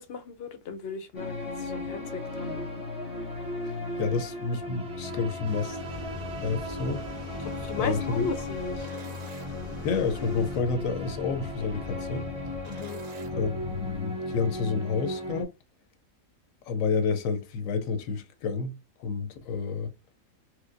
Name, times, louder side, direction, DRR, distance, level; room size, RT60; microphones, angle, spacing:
voice 1, 0.0-2.7 4.0-4.2 7.4-8.9 9.5-9.8 12.7-13.0, left 5 dB, 60° left, 0.6 m, -36 dB
sound 1, 1.1-15.4, left 2 dB, 5° right, 1.0 m, -36 dB
voice 2, 4.0-5.8 6.4-7.4 7.8-8.3 9.8-12.3 13.3-15.5 16.6-19.9, left 5 dB, 75° left, 1.0 m, -30 dB
sound 2, 5.4-10.6, right 2 dB, 20° right, 1.3 m, -47 dB
sound 3, 5.9-14.0, left 1 dB, 70° right, 1.2 m, -44 dB
4.4 x 2.2 x 2.5 m
omnidirectional pair, 1.5 m